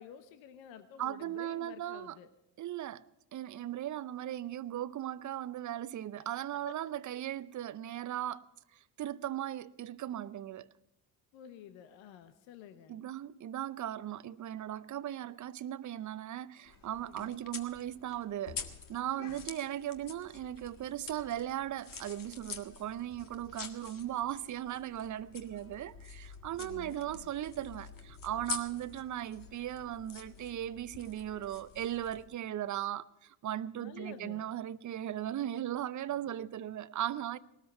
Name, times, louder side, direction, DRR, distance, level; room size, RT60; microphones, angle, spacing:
voice 1, 0.0-2.3 6.5-6.7 11.3-13.0 17.1-17.6 19.1-19.4 26.6-27.3 33.8-34.4, left 9 dB, 65° left, 1.1 m, -51 dB
voice 2, 1.0-2.2 2.6-3.0 3.3-8.5 8.7-10.7 12.9-18.6 18.9-37.4, right 12 dB, 35° right, 0.7 m, -38 dB
sound 1, 16.6-32.2, left 5 dB, 40° left, 1.8 m, -47 dB
19.5 x 13.0 x 4.4 m
hypercardioid pair, 60°, 49 cm